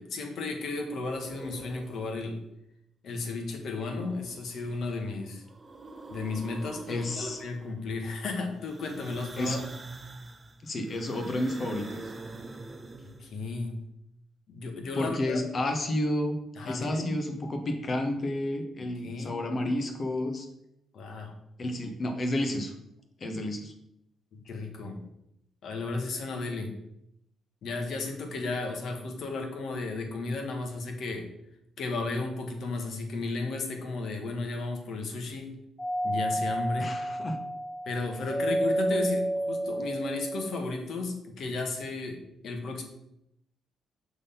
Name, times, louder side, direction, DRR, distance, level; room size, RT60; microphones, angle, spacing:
voice 1, 0.0-2.4 3.0-5.4 6.1-9.6 13.2-13.7 14.5-15.4 16.5-17.1 19.0-19.4 20.9-21.3 24.3-25.0 25.6-26.7 27.6-31.3 31.8-35.5 36.0-36.9 37.8-42.2 42.4-42.8, left 3 dB, 65° left, 4 dB, 1.4 m, -34 dB
sound 1, 1.0-2.3 4.0-5.0 5.3-7.9 8.6-13.5, right 3 dB, 25° right, 0.8 m, -44 dB
voice 2, 6.9-7.4 9.4-9.6 10.6-12.0 14.9-16.4 16.6-20.5 21.6-22.7 23.2-23.7 36.8-37.4, left 1 dB, 40° left, 5 dB, 1.2 m, -31 dB
Doorbell, 35.8-40.6, right 1 dB, 10° left, 0.6 m, -30 dB
6.2 x 3.7 x 5.7 m, 0.81 s
cardioid pair, 90°, 0 cm